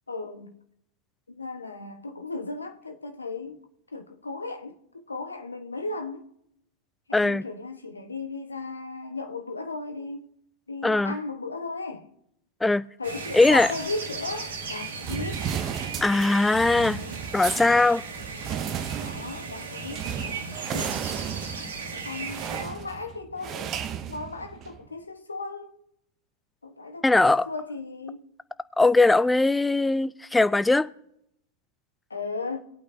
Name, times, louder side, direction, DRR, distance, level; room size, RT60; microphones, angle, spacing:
voice 1, 0.1-0.5 1.3-3.6 3.9-4.7 5.1-6.3 7.1-10.3 10.7-12.1 13.0-15.5 16.7-17.3 19.0-21.1 21.9-23.8 24.1-25.8 26.6-28.2 32.1-32.6, left 3 dB, 80° left, 1.2 m, -36 dB
voice 2, 7.1-7.4 10.8-11.2 12.6-12.8 13.3-13.7 16.0-17.0 17.3-18.0 27.0-27.5 28.8-30.9, left 2 dB, 5° left, 0.4 m, -20 dB
sound 1, 13.0-22.6, right 4 dB, 65° right, 1.7 m, -37 dB
sound 2, 15.0-24.8, right 8 dB, 30° right, 0.8 m, -34 dB
20.0 x 8.5 x 2.7 m
figure-of-eight pair, 90°, 0 cm